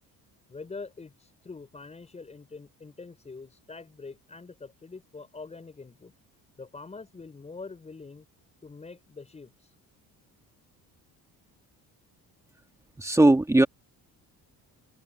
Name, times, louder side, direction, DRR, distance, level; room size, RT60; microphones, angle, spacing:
voice 1, 0.5-6.1 6.6-8.2 8.6-9.5, left 4 dB, 20° left, 5.8 m, -44 dB
voice 2, 13.0-13.7, right 2 dB, 10° right, 2.0 m, -19 dB
open air
cardioid pair, 175°, 37 cm